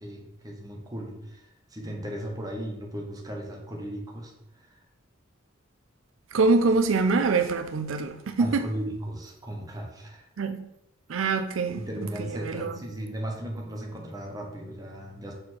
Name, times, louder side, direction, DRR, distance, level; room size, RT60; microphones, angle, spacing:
voice 1, 0.0-4.8 8.4-10.3 11.7-15.3, right 1 dB, 20° right, 1.3 m, -36 dB
voice 2, 6.3-8.7 10.4-10.7 11.1-11.9 12.2-12.7, right 3 dB, 85° right, 0.5 m, -24 dB
6.5 x 4.3 x 4.4 m
head